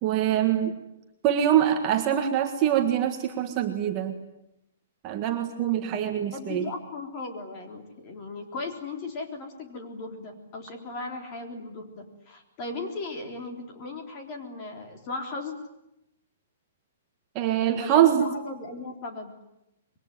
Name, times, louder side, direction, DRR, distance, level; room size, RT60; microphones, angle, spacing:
voice 1, 0.0-0.8 1.2-4.2 5.0-6.7 17.3-18.3, right 10 dB, 20° right, 3 dB, 1.7 m, -24 dB
voice 2, 6.3-15.5 17.7-19.3, left 3 dB, 25° left, 3 dB, 3.7 m, -37 dB
26.5 x 23.0 x 9.6 m, 0.86 s
hypercardioid pair, 175°, 0 cm